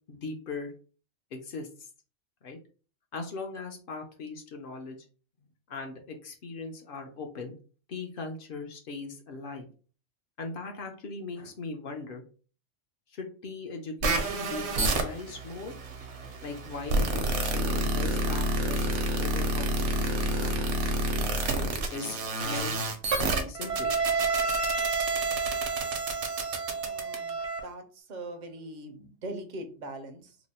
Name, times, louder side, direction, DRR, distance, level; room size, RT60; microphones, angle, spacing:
voice 1, 0.1-0.7 1.3-1.9 2.4-2.6 3.1-5.0 5.7-7.5 7.9-9.7 10.4-12.2 13.1-15.8 16.4-18.9 19.2-20.8 21.6-23.9, left 3 dB, 60° left, 4 dB, 0.7 m, -39 dB
sound 1, 14.0-27.6, right 2 dB, 70° right, 0.9 m, -28 dB
voice 2, 26.8-30.4, right 1 dB, 55° right, 6 dB, 0.5 m, -41 dB
2.9 x 2.0 x 4.0 m, 0.38 s
omnidirectional pair, 1.2 m